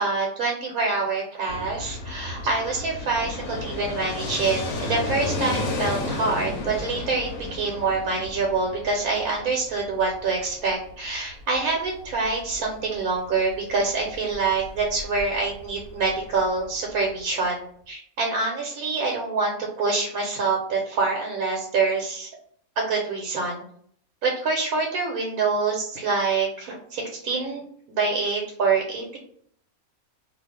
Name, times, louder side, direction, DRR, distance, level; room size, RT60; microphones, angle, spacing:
voice 1, 0.0-22.3 22.8-23.6 24.2-29.2, right 4 dB, 80° right, -1 dB, 1.1 m, -26 dB
Fixed-wing aircraft airplane, 1.5-17.2, left 2 dB, 75° left, 1.0 m, -34 dB
2.5 x 2.4 x 3.3 m, 0.62 s
omnidirectional pair, 1.5 m